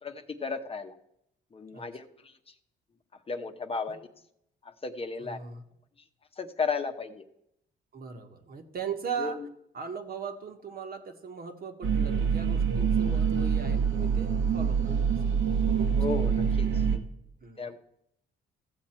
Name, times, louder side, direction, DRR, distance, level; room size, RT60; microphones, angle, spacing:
voice 1, 0.0-1.0 1.5-2.5 3.1-4.1 4.6-5.4 6.3-7.3 9.2-9.5 16.0-17.0 17.6-17.8, left 4 dB, 30° left, 5 dB, 0.9 m, -35 dB
voice 2, 5.2-5.6 7.9-9.4 9.7-15.4 15.8-15.9 17.4-17.7, right 6 dB, 50° right, 5 dB, 1.5 m, -39 dB
sound 1, 11.8-17.0, right 6 dB, 75° right, 1.5 m, -26 dB
14.5 x 7.2 x 4.4 m, 0.77 s
cardioid pair, 90°, 20 cm